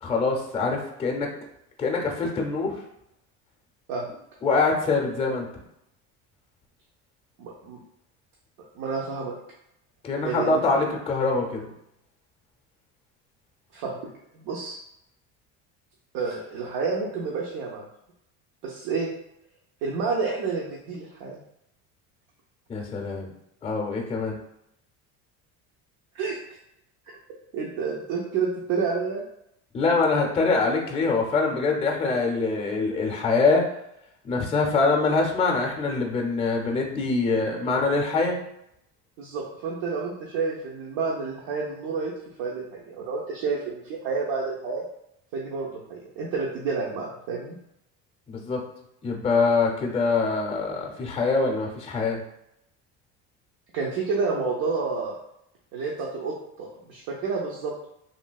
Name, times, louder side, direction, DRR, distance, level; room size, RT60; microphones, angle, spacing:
voice 1, 0.0-1.3 1.8-2.8 4.4-5.5 10.0-11.7 22.7-23.3 23.6-24.4 29.7-33.6 34.2-38.4 48.3-48.6 49.0-52.2, left 3 dB, 15° left, 0 dB, 0.5 m, -24 dB
voice 2, 7.4-7.8 8.6-9.3 10.2-10.6 13.7-13.9 14.3-14.8 16.1-17.8 18.6-19.1 19.8-21.4 26.1-26.4 27.5-29.3 39.2-42.1 42.4-44.8 45.3-47.6 53.7-55.2 55.7-57.7, right 4 dB, 70° right, -2 dB, 0.6 m, -29 dB
3.2 x 2.6 x 2.3 m, 0.80 s
cardioid pair, 120°, 36 cm